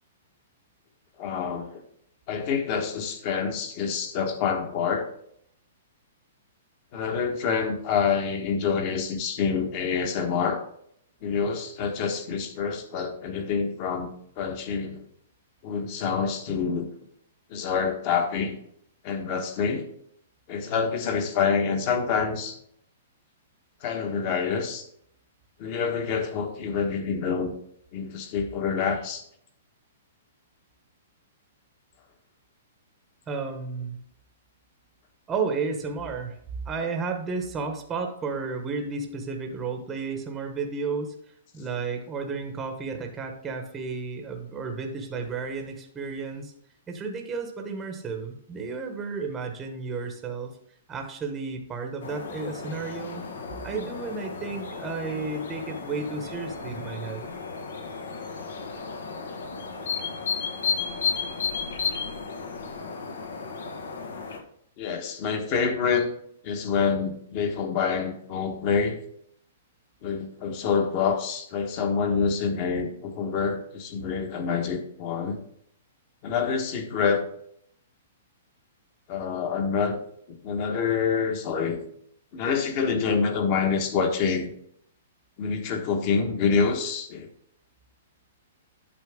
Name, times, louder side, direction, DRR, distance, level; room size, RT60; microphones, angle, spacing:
voice 1, 1.2-1.8 2.3-5.1 6.9-10.6 11.2-15.1 15.6-16.9 17.5-18.6 19.0-19.9 20.5-22.6 23.8-24.9 25.6-27.5 27.9-29.2 64.8-66.1 66.4-69.0 70.0-75.4 76.2-77.2 79.1-80.0 80.3-81.8 82.3-84.5 85.4-87.3, left 6 dB, 35° left, 6 dB, 1.2 m, -27 dB
voice 2, 33.3-34.0 35.3-36.4 36.6-41.2 41.5-46.5 46.9-50.5 50.9-53.2 53.6-57.3, right 4 dB, 10° right, 3 dB, 0.9 m, -32 dB
sound 1, 52.0-64.4, left 5 dB, 90° left, 1.6 m, -33 dB
9.3 x 6.6 x 3.6 m, 0.68 s
hypercardioid pair, 170°, 0 cm